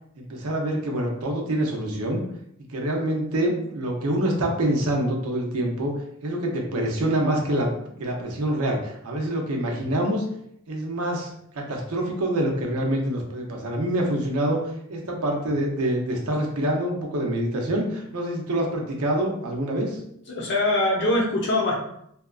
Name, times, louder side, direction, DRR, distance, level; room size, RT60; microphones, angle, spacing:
voice 1, 0.2-2.2 2.7-7.7 8.0-10.2 10.7-14.6 14.9-20.0, right 1 dB, 80° right, 0 dB, 0.6 m, -26 dB
voice 2, 20.3-21.7, left 2 dB, 55° left, -2 dB, 0.7 m, -22 dB
2.7 x 2.3 x 2.3 m, 0.73 s
head